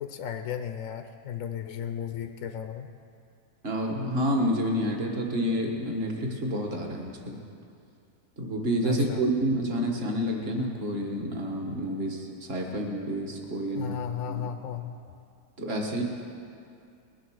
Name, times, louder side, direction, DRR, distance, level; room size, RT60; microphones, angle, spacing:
voice 1, 0.0-2.9 8.8-9.2 13.8-15.0, left 8 dB, 65° left, 7 dB, 0.9 m, -35 dB
voice 2, 3.6-7.4 8.4-14.0 14.3-14.5 15.6-16.0, equal, 40° right, 1 dB, 1.6 m, -29 dB
20.5 x 7.2 x 6.3 m, 2.4 s
omnidirectional pair, 1.7 m